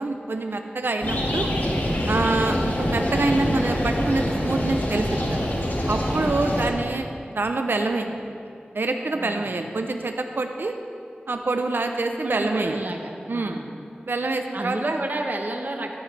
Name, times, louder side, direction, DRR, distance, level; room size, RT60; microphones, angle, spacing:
voice 1, 0.0-1.5 2.1-5.5 5.9-8.4 8.7-10.7 11.3-12.8 13.3-13.6 14.0-15.0, right 3 dB, 75° right, 5 dB, 0.6 m, -26 dB
sound 1, 1.0-6.7, equal, 60° left, 2.0 m, -25 dB
voice 2, 6.1-6.6 9.1-9.5 12.2-13.7 14.5-16.0, right 1 dB, 55° right, 2 dB, 1.0 m, -31 dB
14.0 x 11.0 x 3.3 m, 2.5 s
wide cardioid pair, 55°, 4 cm